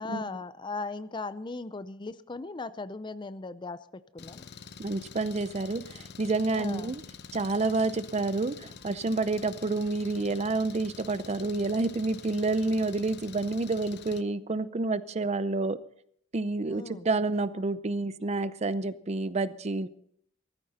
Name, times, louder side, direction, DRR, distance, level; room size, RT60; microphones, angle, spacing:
voice 1, 0.0-4.5 6.5-6.9 16.7-17.1, left 3 dB, 25° left, 15 dB, 0.5 m, -38 dB
Engine, 4.2-14.2, left 5 dB, 55° left, 0.8 m, -46 dB
voice 2, 4.8-7.0 7.3-15.8 16.3-19.9, right 3 dB, 35° right, 15 dB, 0.6 m, -29 dB
16.5 x 14.5 x 4.2 m, 0.65 s
head